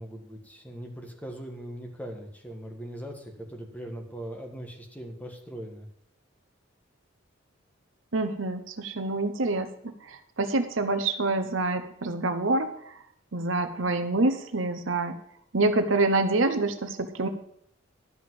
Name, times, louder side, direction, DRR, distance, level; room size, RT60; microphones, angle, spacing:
voice 1, 0.0-5.9, right 1 dB, 10° left, 3 dB, 1.5 m, -40 dB
voice 2, 8.1-12.9 13.3-15.2 15.5-17.3, right 2 dB, 70° right, 9 dB, 0.9 m, -26 dB
12.0 x 5.3 x 7.7 m, 0.71 s
head